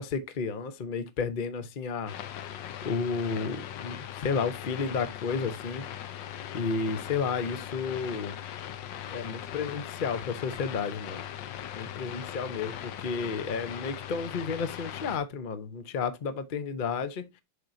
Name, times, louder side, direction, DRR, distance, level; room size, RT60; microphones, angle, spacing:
voice 1, 0.0-2.1 2.8-4.0 4.2-5.8 6.5-8.3 9.1-11.2 11.7-17.2, left 5 dB, 55° left, 0.5 m, -32 dB
sound 1, 2.1-15.2, left 10 dB, 70° left, 1.5 m, -40 dB
8.2 x 6.1 x 2.6 m
omnidirectional pair, 2.1 m